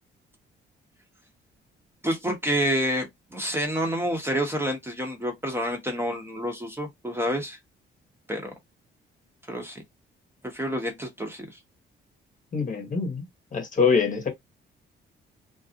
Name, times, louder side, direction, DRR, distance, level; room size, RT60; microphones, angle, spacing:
voice 1, 2.0-7.6 8.3-8.5 9.5-9.8 10.5-11.5, equal, 10° right, 0.8 m, -28 dB
voice 2, 12.5-13.3 13.5-14.3, left 5 dB, 40° left, 0.9 m, -24 dB
2.4 x 2.0 x 2.6 m
cardioid pair, 90°, 20 cm